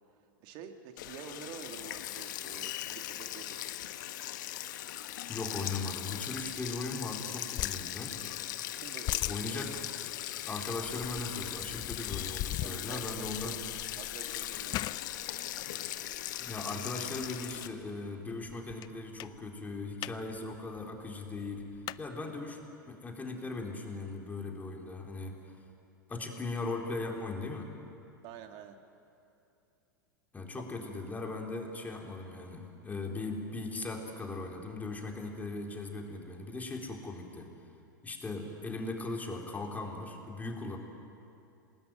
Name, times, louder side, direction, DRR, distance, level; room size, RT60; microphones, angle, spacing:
voice 1, 0.4-3.6 8.8-9.7 12.6-13.7 13.9-15.0 28.2-28.8, right 7 dB, 50° right, 5 dB, 2.5 m, -48 dB
Sink (filling or washing), 1.0-17.7, left 13 dB, 65° left, 1.4 m, -39 dB
voice 2, 5.3-8.3 9.3-9.8 10.4-13.5 16.4-25.4 26.1-27.7 30.3-37.5 38.0-40.8, left 3 dB, 15° left, 1 dB, 4.0 m, -39 dB
sound 1, 7.6-8.5 8.8-16.7 17.3-17.6 18.0-18.1 18.3-18.9 19.2-19.4 19.7-20.2 20.4-20.5 20.8-22.0, left 16 dB, 40° left, 0.6 m, -40 dB
27.5 x 20.5 x 9.3 m, 2.7 s
hypercardioid pair, 100°, 11 cm